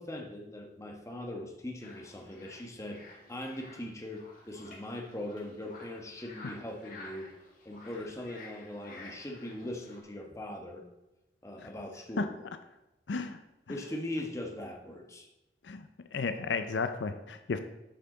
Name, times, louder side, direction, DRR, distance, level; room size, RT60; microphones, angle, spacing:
voice 1, 0.0-3.0 3.3-7.3 7.6-10.8 11.4-12.4 13.7-15.3 15.7-15.8, left 1 dB, 15° left, 2 dB, 1.1 m, -40 dB
sound 1, 1.8-10.0, left 2 dB, 50° left, 1.8 m, -52 dB
voice 2, 13.1-13.4 15.6-17.6, left 4 dB, 75° left, 9 dB, 0.5 m, -33 dB
9.9 x 5.7 x 3.8 m, 0.97 s
head